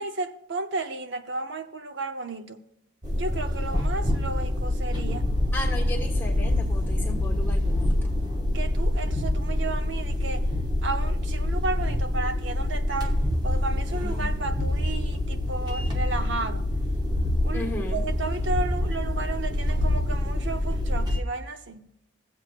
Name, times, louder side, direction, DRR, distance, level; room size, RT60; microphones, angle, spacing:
voice 1, 0.0-2.6 3.1-5.3 8.5-10.5 10.8-13.2 13.4-16.7 17.4-21.9, right 3 dB, 65° right, 0.8 m, -33 dB
sound 1, 3.0-21.2, left 1 dB, 20° right, 1.0 m, -26 dB
voice 2, 5.5-8.1 17.5-18.0, left 1 dB, 10° left, 1.4 m, -35 dB
17.0 x 7.8 x 2.4 m
head